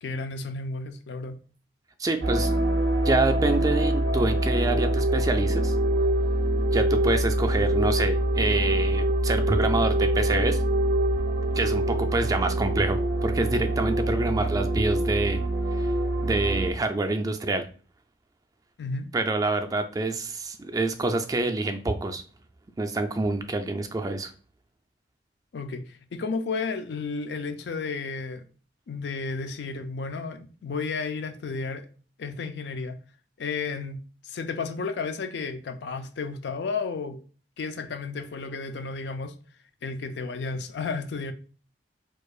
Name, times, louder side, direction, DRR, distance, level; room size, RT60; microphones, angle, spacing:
voice 1, 0.0-1.4 18.8-19.1 25.5-28.5 28.9-31.9 32.2-33.0 33.4-37.2 37.6-39.3 39.8-41.3, left 4 dB, 75° left, 0.4 m, -32 dB
voice 2, 2.0-2.6 3.0-5.8 6.7-10.6 11.5-15.4 15.7-15.9 16.2-17.6 19.1-22.2 22.8-24.3, right 2 dB, 20° right, 0.3 m, -27 dB
sound 1, 2.2-16.7, right 1 dB, 80° right, 0.6 m, -24 dB
4.6 x 2.4 x 2.3 m
head